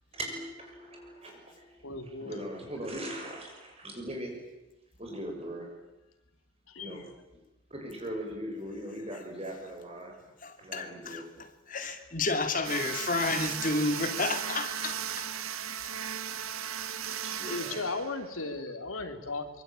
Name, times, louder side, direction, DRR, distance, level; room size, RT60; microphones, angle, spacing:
voice 1, 0.1-1.9 2.2-4.4 5.0-5.7 6.8-7.0 7.7-10.1 10.6-11.2 13.8-13.9 16.3-16.4 17.2-17.8, right 1 dB, 30° right, 6.3 m, -40 dB
voice 2, 1.8-2.4 6.7-7.1 12.6-12.7 15.7-16.0 17.5-19.6, left 3 dB, 85° left, 3.2 m, -37 dB
voice 3, 10.4-15.3, left 3 dB, 40° left, 2.6 m, -31 dB
sound 1, 12.6-18.6, right 8 dB, 85° right, 1.4 m, -36 dB
25.0 x 23.5 x 9.1 m
head